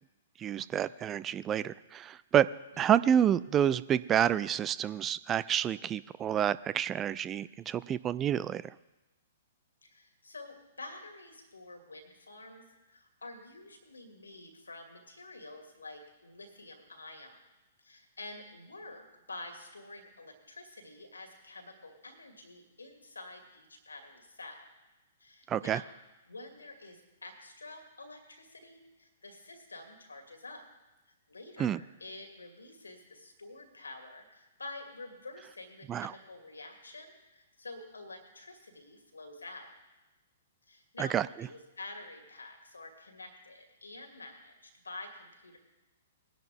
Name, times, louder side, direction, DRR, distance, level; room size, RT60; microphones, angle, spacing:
voice 1, 0.4-2.5 2.8-8.6 25.5-25.8 31.6-31.8 35.9-36.1 41.0-41.3, right 9 dB, 20° right, 17 dB, 0.3 m, -28 dB
voice 2, 2.7-3.1 9.8-17.4 17.8-24.7 25.2-25.9 26.3-30.6 31.3-39.7 40.7-45.6, left 2 dB, 80° left, 4 dB, 2.3 m, -48 dB
20.0 x 10.5 x 3.5 m, 1.1 s
figure-of-eight pair, 115°, 0 cm